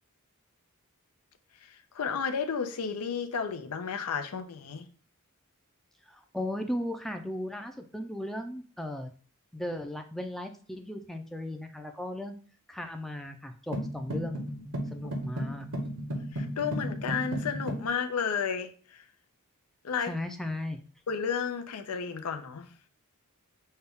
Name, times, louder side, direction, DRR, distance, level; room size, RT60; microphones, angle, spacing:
voice 1, 1.6-4.9 15.0-15.1 16.3-19.1 19.8-20.1 21.1-22.7, left 6 dB, 85° left, 8 dB, 0.5 m, -32 dB
voice 2, 6.1-9.1 9.5-12.4 12.7-14.4 14.9-15.7 20.1-20.8, left 1 dB, ahead, 5 dB, 0.4 m, -36 dB
sound 1, 13.7-17.9, equal, 70° right, 1.0 m, -34 dB
5.5 x 2.3 x 3.5 m, 0.42 s
head